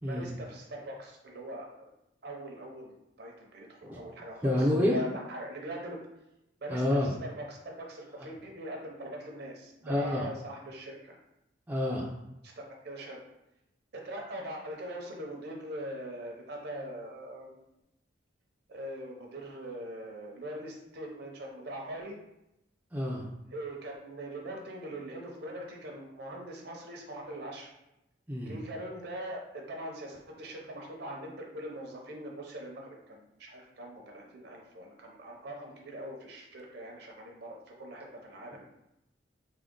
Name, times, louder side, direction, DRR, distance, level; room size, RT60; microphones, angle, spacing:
voice 1, 0.0-1.9 2.2-6.0 6.6-11.2 12.4-12.5 12.8-13.2 13.9-17.6 18.7-22.2 23.5-27.7 28.5-38.7, right 1 dB, 60° right, 1 dB, 0.7 m, -42 dB
voice 2, 4.4-5.0 6.7-7.1 9.8-10.3 11.7-12.1 22.9-23.3 28.3-28.5, left 1 dB, 10° right, -4 dB, 0.4 m, -28 dB
3.6 x 2.1 x 3.6 m, 0.87 s
head